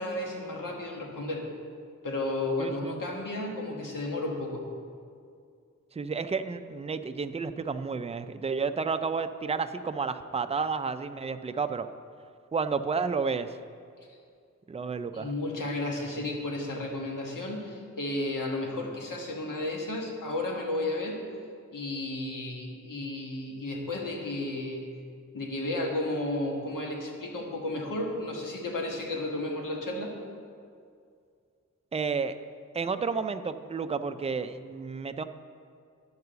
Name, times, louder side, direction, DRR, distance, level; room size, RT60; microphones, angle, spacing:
voice 1, 0.0-1.4 2.0-4.7 14.1-14.2 15.1-21.2 21.7-24.8 25.3-30.2, left 2 dB, 85° left, 0 dB, 1.6 m, -33 dB
voice 2, 2.6-3.0 6.0-11.9 12.5-13.5 14.7-15.3 31.9-32.4 32.7-35.2, right 5 dB, 20° right, 10 dB, 0.3 m, -31 dB
11.0 x 4.8 x 6.8 m, 2.2 s
wide cardioid pair, 110°, 31 cm